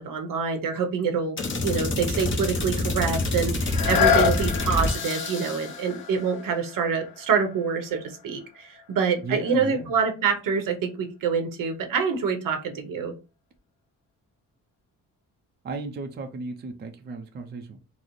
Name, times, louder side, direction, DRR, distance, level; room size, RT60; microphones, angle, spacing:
voice 1, 0.0-13.1, right 5 dB, 75° right, 5 dB, 0.8 m, -26 dB
sound 1, 1.4-5.8, left 2 dB, 35° left, 0.8 m, -27 dB
sound 2, 3.6-9.3 9.9-10.0, left 7 dB, 75° left, 0.5 m, -29 dB
voice 2, 9.2-9.9 15.6-17.8, right 3 dB, 30° right, 5 dB, 0.4 m, -35 dB
3.9 x 2.0 x 3.0 m, 0.30 s
wide cardioid pair, 165°, 34 cm